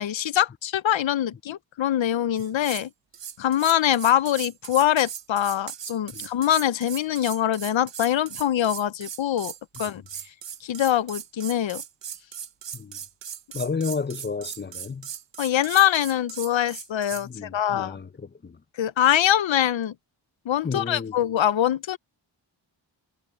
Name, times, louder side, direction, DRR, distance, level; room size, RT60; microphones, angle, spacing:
voice 1, 0.0-2.9 3.4-9.5 9.8-10.0 10.6-11.8 15.4-18.0 18.8-19.9 20.5-22.0, left 11 dB, 80° left, 0.7 m, -23 dB
sound 1, 2.4-2.9 3.1-17.3, right 9 dB, 70° right, 1.0 m, -38 dB
voice 2, 13.5-15.1 17.2-18.6 20.6-21.2, left 5 dB, 25° left, 0.6 m, -32 dB
wide cardioid pair, 115°, 45 cm